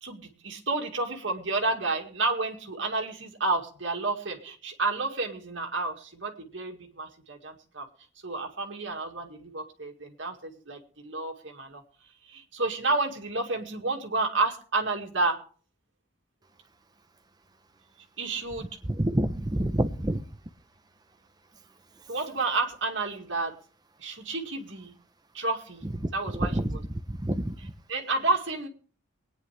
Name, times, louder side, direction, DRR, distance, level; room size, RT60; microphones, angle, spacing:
voice 1, 0.0-7.9 8.2-11.8 12.3-15.4 18.2-18.7 22.1-23.6 24.0-24.9 25.3-25.9 26.1-26.8 27.9-28.7, right 3 dB, 70° right, 2.0 m, -30 dB
voice 2, 18.6-20.2 26.0-26.1 26.4-26.8 27.1-27.7, right 1 dB, 20° right, 0.7 m, -28 dB
23.0 x 9.6 x 3.4 m
head